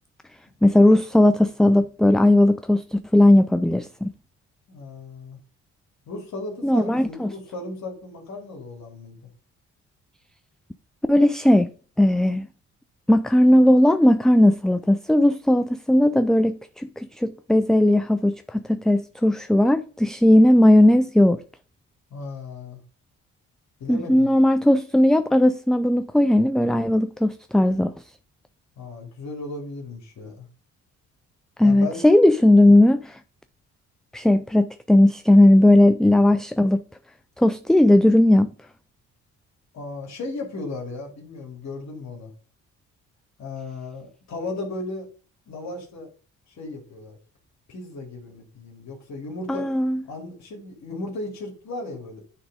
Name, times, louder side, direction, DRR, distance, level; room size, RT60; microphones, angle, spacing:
voice 1, 0.6-4.1 6.6-7.3 11.1-11.7 12.0-12.5 13.1-21.4 23.9-27.9 31.6-33.2 34.1-36.8 37.4-38.5 49.5-50.0, left 1 dB, ahead, 0.3 m, -17 dB
voice 2, 4.7-5.4 6.1-9.2 22.1-22.8 23.8-24.3 28.8-30.5 31.6-32.0 39.7-42.3 43.4-45.1 45.5-46.1 46.5-47.2 47.7-49.7 50.1-52.2, left 2 dB, 65° left, 2.4 m, -35 dB
9.8 x 3.7 x 5.1 m
cardioid pair, 90°, 30 cm